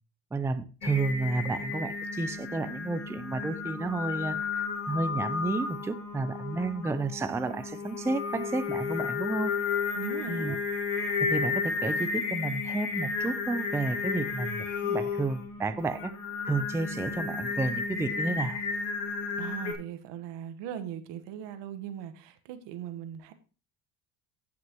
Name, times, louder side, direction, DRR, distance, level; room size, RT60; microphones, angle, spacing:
voice 1, 0.3-9.5 10.3-10.5 11.2-16.1 16.4-18.6, right 3 dB, 5° right, 11 dB, 0.5 m, -31 dB
Singing, 0.8-19.7, left 5 dB, 70° left, 2.6 m, -33 dB
voice 2, 9.9-10.6 19.4-23.3, right 10 dB, 70° right, 10 dB, 1.3 m, -39 dB
15.0 x 6.0 x 3.0 m, 0.35 s
supercardioid pair, 100°, 43 cm